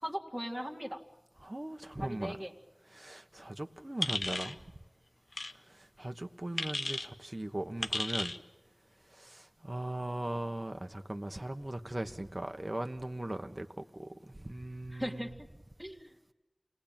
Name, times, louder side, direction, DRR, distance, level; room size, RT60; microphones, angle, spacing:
voice 1, 0.0-1.0 2.0-2.5 14.9-15.3 15.8-16.1, equal, ahead, 2.2 m, -38 dB
voice 2, 1.4-2.4 2.9-4.6 5.7-8.3 9.1-15.3, right 1 dB, 40° right, 1.3 m, -39 dB
sound 1, 4.0-4.5 5.3-5.5 6.6-7.1 7.8-8.4, left 2 dB, 85° left, 0.9 m, -34 dB
28.5 x 19.5 x 9.0 m
wide cardioid pair, 50°, 0 cm